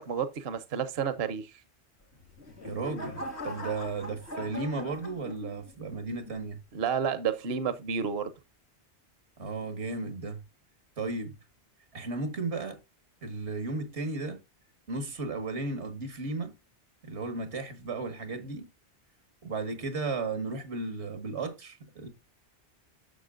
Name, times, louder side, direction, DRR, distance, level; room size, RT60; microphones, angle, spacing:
voice 1, 0.0-1.6 6.7-8.3, right 7 dB, 65° right, 1.0 m, -30 dB
sound 1, 2.1-5.7 6.2-6.6, left 1 dB, 80° left, 3.6 m, -41 dB
voice 2, 2.6-6.6 9.4-10.4 11.0-11.3 11.9-12.8 13.2-14.4 14.9-16.5 17.0-18.7 19.4-22.1, right 3 dB, 90° right, 1.9 m, -34 dB
11.0 x 6.9 x 2.5 m
omnidirectional pair, 1.1 m